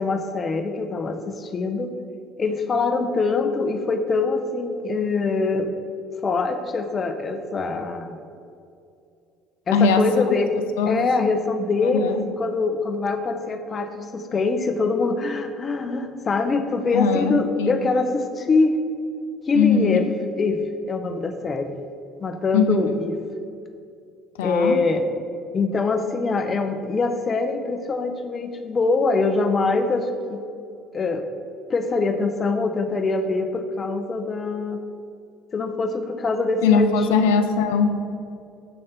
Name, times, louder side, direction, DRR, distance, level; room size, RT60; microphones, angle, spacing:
voice 1, 0.0-1.9 2.4-5.7 6.2-8.2 9.7-10.5 10.8-18.8 19.5-21.7 22.2-23.2 24.4-25.0 25.5-30.4 30.9-31.3 31.7-34.8 35.5-36.9, left 3 dB, 35° left, 7 dB, 0.7 m, -24 dB
voice 2, 9.7-10.1 10.8-11.0 11.9-12.2 16.9-17.8 19.5-20.0 22.5-23.0 24.4-24.8 36.6-38.0, left 5 dB, 85° left, 7 dB, 0.5 m, -20 dB
7.9 x 3.2 x 5.7 m, 2.5 s
hypercardioid pair, 70°, 0 cm